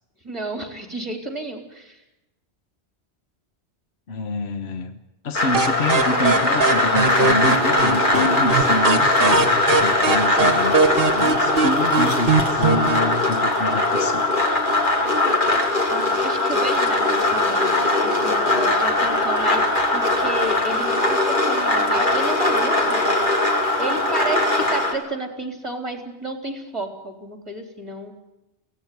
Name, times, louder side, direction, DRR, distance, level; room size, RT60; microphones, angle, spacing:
voice 1, 0.2-2.0 15.9-23.0 23.8-28.1, right 2 dB, 25° right, 4 dB, 3.9 m, -31 dB
voice 2, 4.1-5.0 5.2-14.3, left 2 dB, 70° left, 8 dB, 1.4 m, -27 dB
sound 1, 5.3-24.9, left 2 dB, 45° left, 3.2 m, -20 dB
sound 2, 5.5-13.1, right 4 dB, 55° right, 1.6 m, -22 dB
23.0 x 17.5 x 9.4 m, 0.96 s
omnidirectional pair, 1.1 m